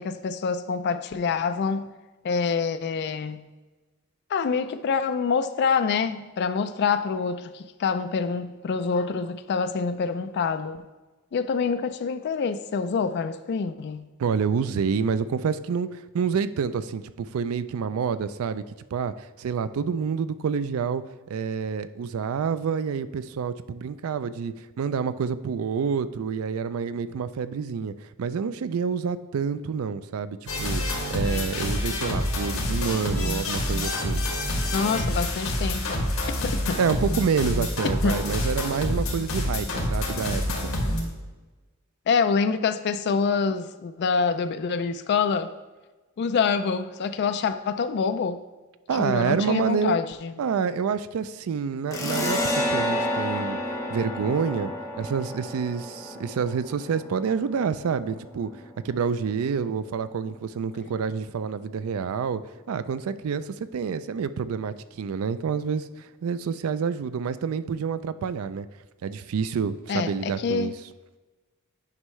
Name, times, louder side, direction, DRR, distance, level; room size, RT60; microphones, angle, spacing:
voice 1, 0.0-1.9 2.2-3.5 4.3-10.8 11.3-14.1 34.7-36.0 36.4-36.8 38.0-38.2 42.1-45.5 46.2-48.4 48.9-50.3 69.9-70.7, left 5 dB, 50° left, 9 dB, 0.3 m, -26 dB
voice 2, 14.2-21.0 21.3-30.8 31.1-34.2 36.8-40.7 48.9-50.0 50.4-53.6 53.9-54.7 55.0-58.5 58.8-62.4 62.7-68.7 69.0-70.7, right 6 dB, 70° right, 14 dB, 0.4 m, -28 dB
sound 1, 30.5-41.0, left 1 dB, 65° left, 1.8 m, -27 dB
sound 2, 51.9-59.1, left 1 dB, 15° left, 1.0 m, -30 dB
9.6 x 5.5 x 3.1 m, 1.2 s
head